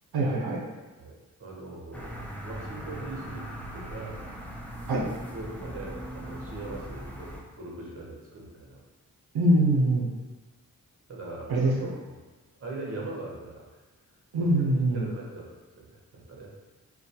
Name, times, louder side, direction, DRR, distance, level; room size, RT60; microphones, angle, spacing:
voice 1, 0.1-0.6 4.9-5.0 9.3-10.1 11.5-11.9 14.3-15.1, right 1 dB, 80° right, -3 dB, 0.5 m, -23 dB
voice 2, 1.0-2.2 2.4-4.2 5.0-8.8 11.1-11.5 11.8-12.2 12.6-13.8 14.4-14.5 14.9-15.5 15.8-16.5, right 2 dB, 40° right, -3 dB, 0.7 m, -41 dB
sound 1, 1.9-7.4, equal, 5° left, 0.3 m, -39 dB
2.3 x 2.2 x 2.7 m, 1.2 s
wide cardioid pair, 80°, 37 cm